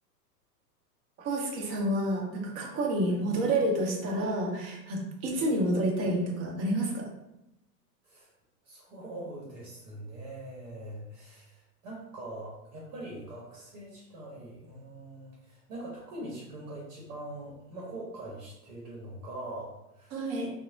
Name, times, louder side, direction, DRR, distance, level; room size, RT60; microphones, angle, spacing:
voice 1, 1.2-7.1 20.1-20.5, right 1 dB, 30° right, 0 dB, 0.7 m, -29 dB
voice 2, 8.6-20.2, right 1 dB, 60° right, -3 dB, 0.9 m, -43 dB
2.9 x 2.0 x 2.6 m, 0.89 s
hypercardioid pair, 105°, 49 cm